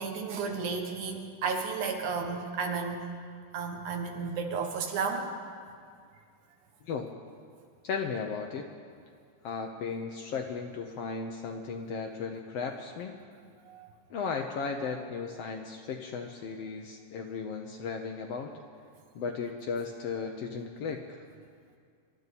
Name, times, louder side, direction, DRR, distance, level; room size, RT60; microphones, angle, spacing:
voice 1, 0.0-3.1 3.5-5.3 13.7-13.9, right 5 dB, 70° right, 3 dB, 2.7 m, -33 dB
voice 2, 7.8-8.7 9.4-13.1 14.1-18.5 19.1-21.2, left 5 dB, 80° left, 2 dB, 1.4 m, -35 dB
26.5 x 12.0 x 4.2 m, 2.2 s
omnidirectional pair, 3.9 m